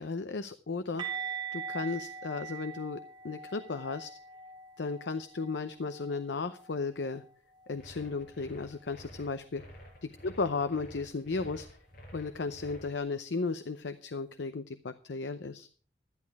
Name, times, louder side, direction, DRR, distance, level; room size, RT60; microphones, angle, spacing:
voice 1, 0.0-3.0 3.2-4.1 4.8-7.2 7.7-9.6 10.2-11.7 12.1-15.7, left 4 dB, 75° left, 10 dB, 0.7 m, -35 dB
sound 1, 1.0-6.8 7.0-7.3 7.6-7.8 11.0-11.1, right 6 dB, 25° right, 2.0 m, -42 dB
sound 2, 7.7-12.9, equal, 55° left, 5.8 m, -50 dB
12.0 x 11.0 x 4.7 m, 0.41 s
head